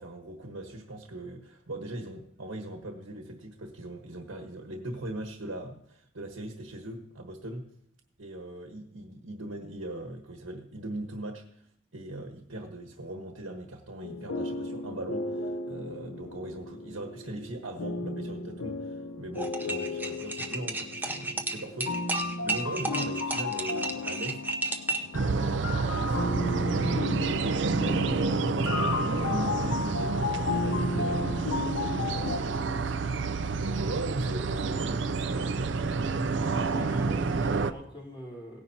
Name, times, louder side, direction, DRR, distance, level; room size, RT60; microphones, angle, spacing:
voice 1, 0.0-7.6 8.2-11.6 11.9-24.4 24.9-36.6, right 1 dB, 85° right, 3 dB, 1.3 m, -40 dB
sound 1, 14.0-32.4, left 3 dB, 90° left, 0.9 m, -34 dB
sound 2, 19.4-25.2, right 2 dB, 10° right, 0.6 m, -33 dB
sound 3, 25.1-37.7, right 4 dB, 60° right, 0.5 m, -29 dB
voice 2, 36.1-38.6, equal, 25° left, -4 dB, 3.6 m, -43 dB
17.5 x 10.0 x 2.8 m, 0.68 s
head